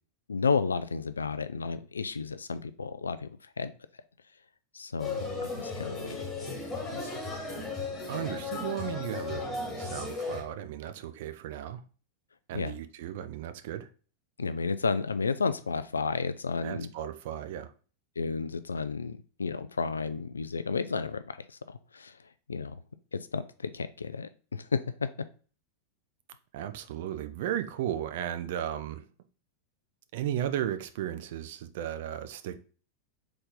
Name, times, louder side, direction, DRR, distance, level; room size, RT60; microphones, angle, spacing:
voice 1, 0.3-3.3 3.6-3.7 4.7-6.5 6.9-7.1 12.5-12.7 14.4-16.9 18.2-21.3 21.7-22.1 22.5-22.8 23.1-23.4 23.7-25.1, left 4 dB, 75° left, 0.3 m, -32 dB
sound 1, 5.0-10.4, left 3 dB, 15° left, 1.6 m, -35 dB
voice 2, 8.1-11.8 12.5-13.9 16.6-17.7 26.5-29.1 30.1-32.6, right 11 dB, 55° right, 0.4 m, -35 dB
4.0 x 3.4 x 3.7 m
figure-of-eight pair, 90°, 0 cm